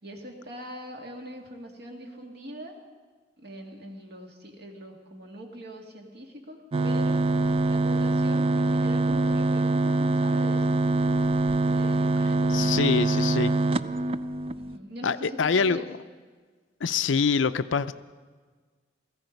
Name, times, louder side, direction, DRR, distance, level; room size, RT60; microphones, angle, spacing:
voice 1, 0.0-2.7 3.4-7.2 7.7-10.8 11.3-13.6 14.5-15.9, equal, 60° right, 2 dB, 2.2 m, -42 dB
sound 1, 6.7-14.8, right 2 dB, 30° right, 0.4 m, -24 dB
voice 2, 12.5-13.5 15.0-15.9 16.8-17.9, left 5 dB, 90° left, 13 dB, 0.5 m, -25 dB
17.5 x 15.0 x 5.3 m, 1.5 s
head